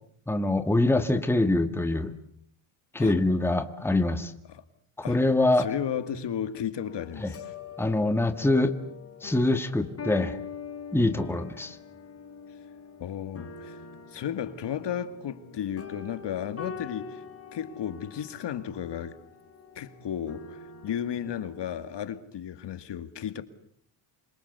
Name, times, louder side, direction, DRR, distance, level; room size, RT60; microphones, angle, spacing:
voice 1, 0.3-2.1 2.9-4.3 5.0-5.7 7.2-7.3 7.8-8.8 9.2-10.4 10.9-11.8, left 2 dB, 5° left, 1.7 m, -24 dB
voice 2, 5.6-7.5 13.0-13.8 14.1-17.2 17.5-19.2 19.8-23.4, left 9 dB, 55° left, 2.2 m, -34 dB
sound 1, 6.9-22.0, left 6 dB, 30° left, 4.2 m, -44 dB
27.5 x 25.5 x 8.1 m
cardioid pair, 130°, 50 cm